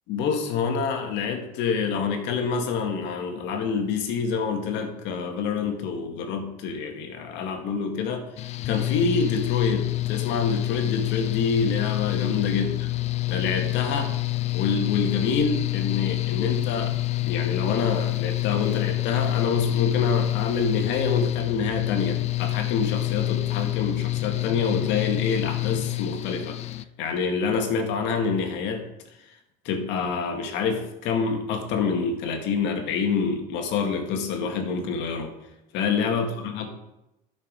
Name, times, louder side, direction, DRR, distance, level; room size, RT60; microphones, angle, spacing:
voice 1, 0.1-8.3 8.7-12.7 13.3-14.1 14.5-17.0 17.3-26.6 27.0-28.9 29.7-35.3 35.7-36.7, left 5 dB, 70° left, 4 dB, 1.9 m, -27 dB
Mechanical fan, 8.4-26.8, left 18 dB, 35° left, 0.4 m, -27 dB
12.0 x 6.5 x 5.2 m, 0.92 s
cardioid pair, 135°, 19 cm